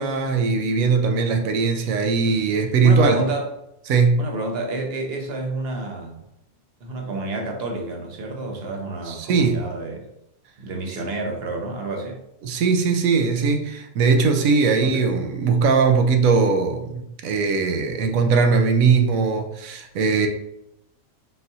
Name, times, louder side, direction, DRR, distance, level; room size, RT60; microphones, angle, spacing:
voice 1, 0.0-3.2 3.9-4.3 9.1-9.6 12.4-20.3, right 4 dB, 75° right, 5 dB, 1.0 m, -20 dB
voice 2, 2.8-3.5 4.2-6.2 6.8-10.1 10.6-12.2 14.8-15.0, right 2 dB, 50° right, 2 dB, 0.9 m, -29 dB
4.0 x 4.0 x 2.6 m, 0.81 s
omnidirectional pair, 1.5 m